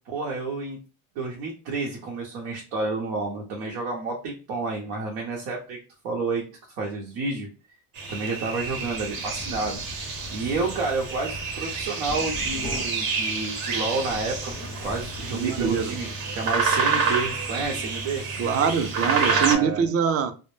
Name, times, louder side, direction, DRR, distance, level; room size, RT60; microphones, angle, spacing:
voice 1, 0.1-0.8 1.2-5.8 6.0-6.4 6.8-7.5 8.1-9.8 10.3-14.5 14.8-18.2 19.3-19.8, right 3 dB, 85° right, 0.9 m, -30 dB
sound 1, 7.9-19.5, right 4 dB, 55° right, 0.8 m, -28 dB
sound 2, 8.5-18.4, left 3 dB, 20° left, 0.5 m, -42 dB
voice 2, 15.3-16.0 18.4-20.3, right 7 dB, 35° right, 0.4 m, -24 dB
2.1 x 2.0 x 3.1 m
supercardioid pair, 100°, 43 cm